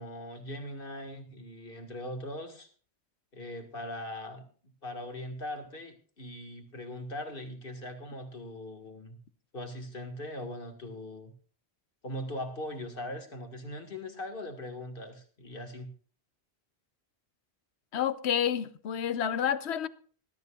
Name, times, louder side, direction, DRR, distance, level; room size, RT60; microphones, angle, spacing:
voice 1, 0.0-2.7 3.3-4.5 4.8-9.2 9.5-11.3 12.0-15.9, left 1 dB, 55° left, 2.1 m, -40 dB
voice 2, 17.9-19.9, left 9 dB, 75° left, 1.0 m, -29 dB
20.0 x 12.5 x 2.4 m
omnidirectional pair, 1.1 m